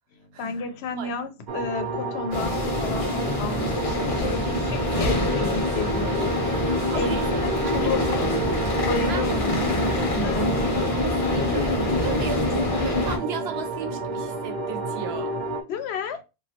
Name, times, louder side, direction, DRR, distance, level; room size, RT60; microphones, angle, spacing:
voice 1, 0.1-6.4 6.7-7.2 7.7-8.1 8.8-10.5 15.7-16.2, left 4 dB, 85° left, 0.8 m, -32 dB
sound 1, 1.5-15.6, right 4 dB, 55° right, 0.7 m, -31 dB
sound 2, 2.3-13.2, left 2 dB, 35° left, 0.8 m, -25 dB
voice 2, 6.9-8.3 9.1-9.3 11.0-15.3, right 6 dB, 75° right, 0.9 m, -36 dB
3.0 x 2.4 x 2.8 m
omnidirectional pair, 1.1 m